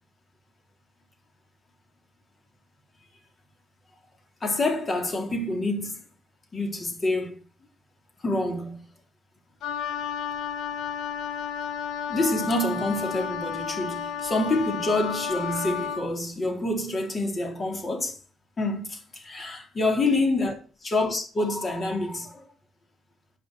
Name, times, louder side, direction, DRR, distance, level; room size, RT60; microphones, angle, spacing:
voice 1, 4.4-6.0 6.5-7.4 8.2-8.8 12.1-18.2 18.6-20.5 20.8-22.5, left 2 dB, 35° left, 4.0 m, -27 dB
Wind instrument woodwind instrument, 9.6-16.1, left 7 dB, 80° left, 1.3 m, -32 dB
10.5 x 6.4 x 6.5 m
cardioid pair, 90°, 0 cm